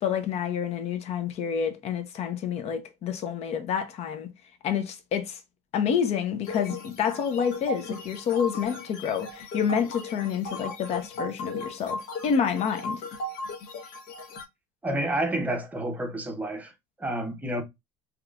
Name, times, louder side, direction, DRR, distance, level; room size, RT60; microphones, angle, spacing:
voice 1, 0.0-4.3 4.6-5.4 5.7-13.0, left 7 dB, 40° left, 0.7 m, -28 dB
sound 1, 6.4-14.4, left 2 dB, 60° left, 1.2 m, -37 dB
voice 2, 14.8-16.7 17.0-17.6, right 1 dB, 10° right, 0.8 m, -29 dB
3.6 x 3.0 x 2.3 m
cardioid pair, 150°, 16 cm